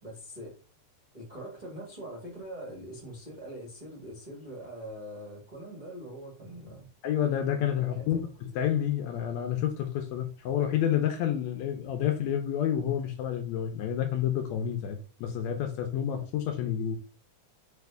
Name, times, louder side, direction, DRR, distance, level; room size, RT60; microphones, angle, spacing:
voice 1, 0.0-0.6 1.1-6.9 7.7-8.2, equal, 40° right, 0.6 m, -43 dB
voice 2, 7.0-17.0, left 10 dB, 75° left, 1.9 m, -29 dB
4.9 x 2.4 x 3.3 m
omnidirectional pair, 3.4 m